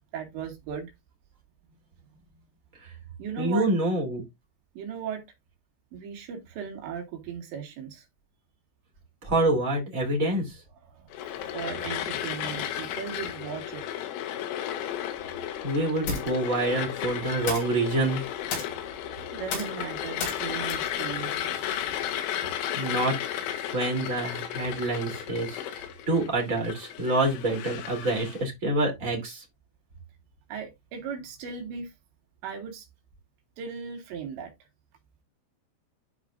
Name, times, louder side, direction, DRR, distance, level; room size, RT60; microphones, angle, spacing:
voice 1, 0.1-0.9 3.2-3.7 4.8-5.2 5.9-8.1 10.9-13.9 18.8-21.5 21.8-22.2 30.5-31.9 32.4-32.9 33.6-34.5, right 7 dB, 75° right, 4.3 m, -37 dB
voice 2, 3.4-4.2 9.2-10.5 15.6-18.2 22.7-23.1 23.7-29.4, right 2 dB, 20° right, 2.7 m, -27 dB
sound 1, 11.1-28.4, left 10 dB, 90° left, 3.5 m, -34 dB
sound 2, 14.9-22.1, left 4 dB, 70° left, 5.1 m, -38 dB
12.5 x 5.0 x 2.5 m
omnidirectional pair, 5.2 m